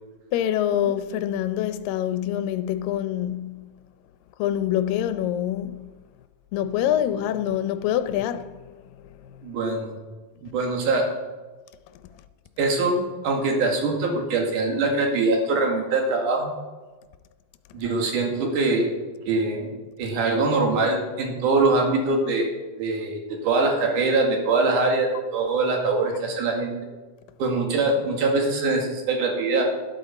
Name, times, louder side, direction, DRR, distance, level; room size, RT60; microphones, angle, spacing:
voice 1, 0.3-3.6 4.4-5.9 6.5-8.8 9.0-9.5, left 11 dB, 80° left, 2.2 m, -26 dB
voice 2, 9.4-10.0 10.4-11.1 12.6-16.5 17.7-18.9 19.3-19.7 20.0-22.5 22.8-26.7 27.4-29.7, right 3 dB, 65° right, 3.3 m, -23 dB
12.5 x 12.0 x 4.2 m
omnidirectional pair, 4.1 m